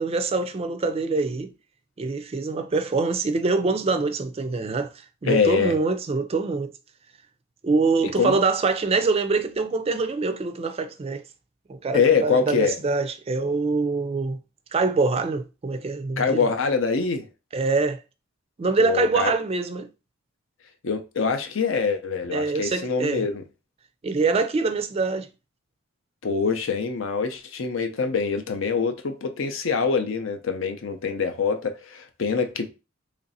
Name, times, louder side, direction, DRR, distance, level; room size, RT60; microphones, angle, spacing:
voice 1, 0.0-1.5 2.0-4.9 5.2-6.7 7.6-11.2 11.7-14.4 14.7-16.5 17.5-18.0 18.6-19.9 22.3-23.2 24.0-25.3, right 3 dB, 30° right, 0.4 m, -24 dB
voice 2, 5.2-5.7 8.2-8.4 11.9-12.8 16.2-17.3 18.8-19.3 20.8-23.4 26.2-32.7, left 5 dB, 75° left, 0.6 m, -24 dB
3.2 x 2.6 x 4.0 m
head